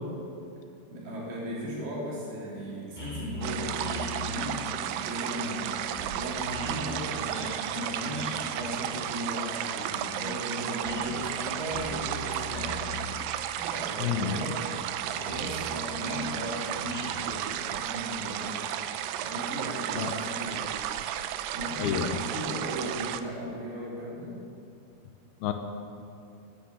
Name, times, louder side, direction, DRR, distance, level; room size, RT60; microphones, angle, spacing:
voice 1, 0.9-14.6 15.0-18.7 19.2-20.7 21.5-24.4, equal, 70° right, -5 dB, 5.2 m, -37 dB
sound 1, 3.0-20.2, left 2 dB, 5° left, 2.6 m, -43 dB
sound 2, 3.4-23.2, right 11 dB, 90° right, 2.0 m, -33 dB
voice 2, 14.0-14.4 19.9-20.1 21.8-22.2 25.4-25.5, left 10 dB, 75° left, 6 dB, 2.6 m, -29 dB
11.5 x 10.5 x 8.7 m, 2.5 s
omnidirectional pair, 4.7 m